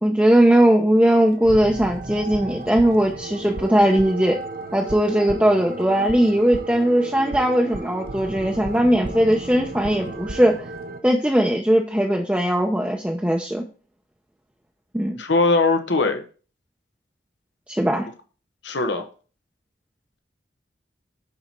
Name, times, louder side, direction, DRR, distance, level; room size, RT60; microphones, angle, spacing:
voice 1, 0.0-4.4 4.7-10.6 11.0-13.6 14.9-15.2 17.7-18.1, right 1 dB, 5° right, 0 dB, 0.7 m, -19 dB
sound 1, 1.3-11.0, right 2 dB, 50° right, 0.8 m, -34 dB
voice 2, 15.2-16.2 18.6-19.1, left 3 dB, 75° left, 6 dB, 1.0 m, -20 dB
9.8 x 4.3 x 4.4 m, 0.37 s
head